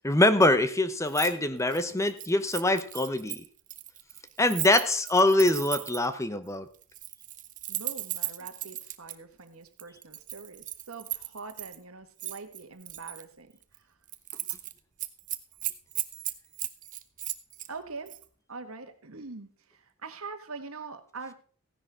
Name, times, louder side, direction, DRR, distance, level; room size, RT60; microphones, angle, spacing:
voice 1, 0.0-3.4 4.4-6.7, left 2 dB, 15° left, 11 dB, 0.8 m, -24 dB
Keys jangling, 1.1-1.3 1.6-6.1 6.8-9.1 9.8-11.8 12.2-13.2 13.6-13.8 14.1-14.7 15.0-17.7 18.1-18.2, right 14 dB, 35° right, 0.8 m, -36 dB
voice 2, 7.7-13.5 17.7-18.2 18.5-21.3, right 4 dB, 75° right, 8 dB, 1.6 m, -43 dB
15.5 x 10.5 x 3.6 m, 0.42 s
head